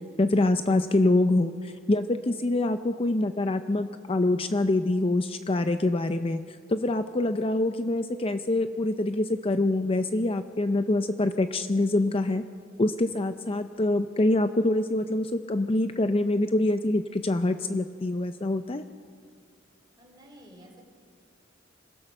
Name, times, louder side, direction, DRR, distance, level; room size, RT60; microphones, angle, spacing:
voice 1, 0.0-12.4 12.8-18.9, left 2 dB, 30° left, 9 dB, 0.6 m, -25 dB
voice 2, 20.0-20.9, equal, 20° right, 0 dB, 4.1 m, -51 dB
26.0 x 16.5 x 6.6 m, 2.1 s
head